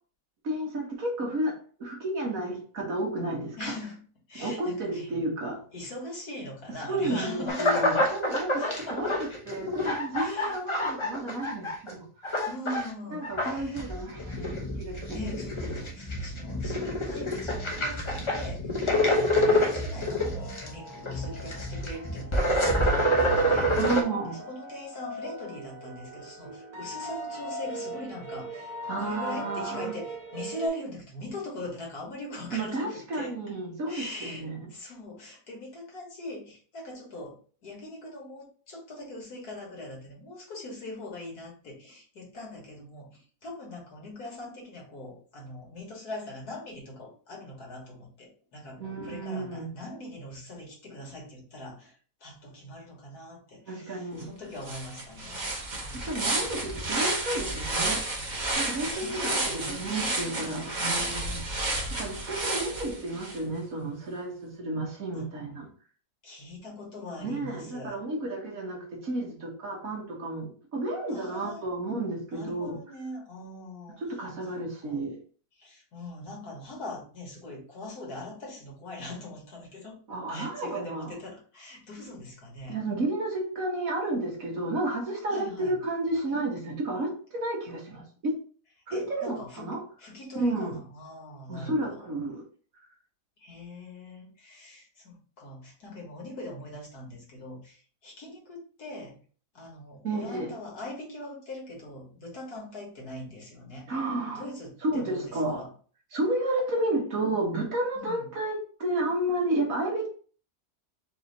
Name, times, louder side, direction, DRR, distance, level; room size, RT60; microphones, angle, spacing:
voice 1, 0.4-3.7 4.4-5.6 6.9-8.6 9.0-9.1 9.5-12.4 13.1-15.0 23.8-24.4 28.9-30.0 32.5-34.7 48.8-49.7 53.7-54.3 55.9-58.1 58.6-61.5 62.0-65.7 67.2-72.8 74.0-75.2 80.1-81.1 82.7-88.3 88.9-89.8 90.3-90.8 91.5-92.5 100.0-100.5 103.9-104.4 104.8-105.6 106.1-110.1, right 2 dB, 60° right, -1 dB, 1.7 m, -31 dB
voice 2, 3.6-4.0 4.3-5.1 5.7-7.8 8.6-9.1 10.2-10.5 12.5-13.9 15.1-23.8 24.4-33.3 33.9-56.5 58.6-61.2 65.1-65.3 66.2-68.0 71.1-71.6 72.3-74.0 74.8-75.0 75.6-80.0 80.3-82.8 85.3-85.7 88.9-92.1 93.4-99.2 99.5-103.9 104.3-105.7 108.0-108.3, left 1 dB, 75° left, -2 dB, 2.1 m, -41 dB
sound 1, 7.5-11.9 12.2-12.9 13.2-24.0, equal, 25° left, 0.7 m, -27 dB
sound 2, 20.4-30.7, right 1 dB, 75° right, 1.6 m, -40 dB
sound 3, 54.2-54.3 54.6-63.4, right 2 dB, 35° right, 1.0 m, -31 dB
4.7 x 2.8 x 4.0 m, 0.42 s
omnidirectional pair, 1.7 m